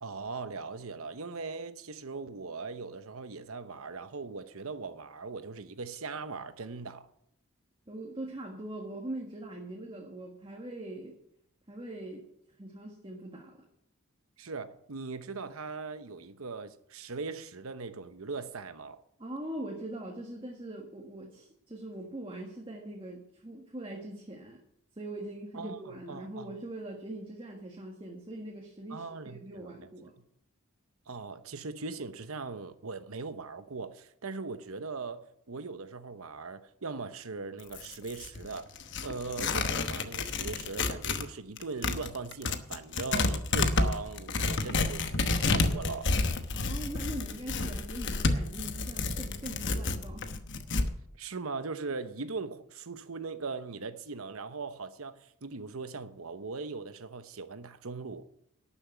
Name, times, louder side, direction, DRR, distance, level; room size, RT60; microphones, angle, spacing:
voice 1, 0.0-7.1 14.4-19.0 25.5-26.5 28.9-29.9 31.1-38.7 39.0-46.1 51.2-58.3, right 4 dB, 75° right, 0.9 m, -40 dB
voice 2, 7.9-11.1 11.7-12.2 12.6-13.6 19.2-24.6 25.0-30.1 46.5-50.3, right 1 dB, 25° right, 1.7 m, -42 dB
Tearing, 37.6-41.3 41.6-50.9, left 3 dB, 55° left, 1.0 m, -30 dB
12.0 x 7.2 x 9.0 m
head